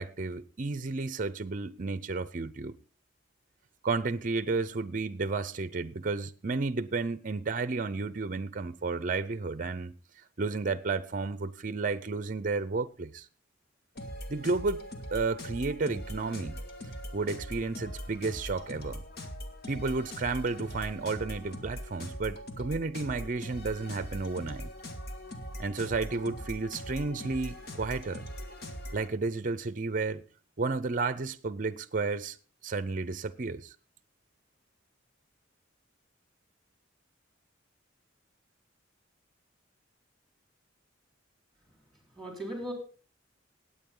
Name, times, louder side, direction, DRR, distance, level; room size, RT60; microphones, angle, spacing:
voice 1, 0.0-2.8 3.8-9.9 10.4-13.3 14.3-14.8 15.1-16.6 17.1-19.0 19.7-24.7 25.6-28.2 28.9-30.2 30.6-32.4 32.6-33.7, right 3 dB, 45° right, 0.6 m, -32 dB
sound 1, 13.9-29.1, equal, 55° left, 1.8 m, -41 dB
voice 2, 41.7-42.7, equal, ahead, 4.0 m, -39 dB
18.0 x 8.7 x 3.8 m
head